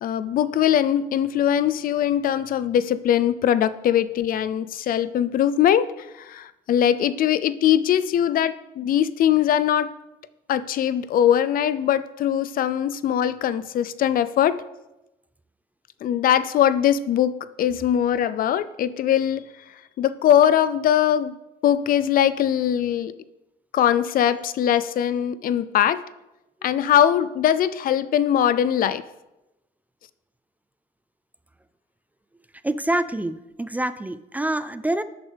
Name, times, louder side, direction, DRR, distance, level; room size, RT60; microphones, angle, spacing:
voice 1, 0.0-5.9 6.2-9.9 10.5-14.6 16.0-19.4 20.0-21.3 21.6-23.1 23.7-26.0 26.6-29.0, left 10 dB, 55° left, 15 dB, 0.5 m, -21 dB
voice 2, 32.6-35.0, right 1 dB, 10° right, 13 dB, 0.4 m, -26 dB
12.5 x 9.0 x 3.5 m, 0.96 s
cardioid pair, 110°, 17 cm